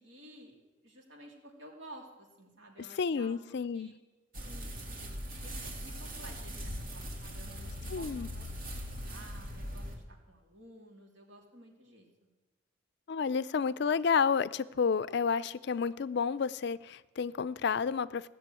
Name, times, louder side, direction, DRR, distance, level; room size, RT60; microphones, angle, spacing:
voice 1, 0.0-3.9 4.4-4.6 5.4-8.7 9.0-12.1, right 1 dB, 65° right, 1 dB, 3.0 m, -53 dB
voice 2, 3.0-3.9 7.9-8.3 13.1-18.3, left 6 dB, 55° left, 17 dB, 0.4 m, -30 dB
sound 1, 4.3-10.0, equal, 45° right, 2.5 m, -40 dB
16.5 x 6.9 x 9.1 m, 1.1 s
head